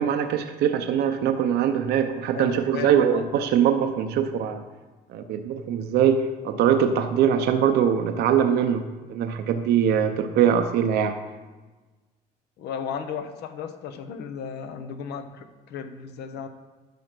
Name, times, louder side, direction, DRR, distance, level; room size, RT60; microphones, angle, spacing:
voice 1, 0.0-4.6 5.1-11.1, right 8 dB, 75° right, 7 dB, 0.7 m, -22 dB
voice 2, 2.3-3.2 12.6-16.5, left 7 dB, 75° left, 8 dB, 1.0 m, -35 dB
11.0 x 5.1 x 6.1 m, 1.3 s
cardioid pair, 110°, 17 cm